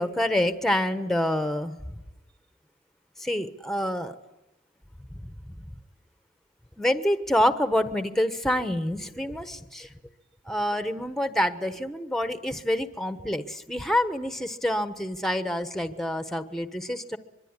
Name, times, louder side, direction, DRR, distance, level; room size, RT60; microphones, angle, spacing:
voice 1, 0.0-1.8 3.2-4.1 6.8-9.9 10.5-17.2, left 1 dB, ahead, 10 dB, 1.2 m, -27 dB
24.5 x 23.0 x 9.7 m, 0.95 s
head